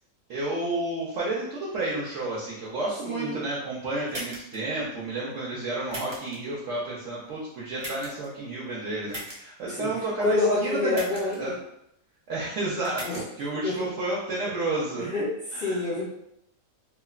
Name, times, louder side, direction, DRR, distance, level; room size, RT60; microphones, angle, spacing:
voice 1, 0.3-11.0 11.4-11.5 12.3-15.1 15.5-15.9, right 2 dB, 65° right, -6 dB, 0.8 m, -31 dB
voice 2, 3.0-3.4 9.7-9.9 10.2-11.6 13.0-13.2 13.6-13.9 15.0-16.0, left 2 dB, 90° left, -5 dB, 0.4 m, -27 dB
sound 1, 4.1-4.6 5.9-6.4 7.8-8.3 9.1-9.4 10.9-11.4 12.8-13.2, right 1 dB, 40° right, 0.4 m, -37 dB
3.0 x 2.0 x 2.3 m, 0.78 s
omnidirectional pair, 1.5 m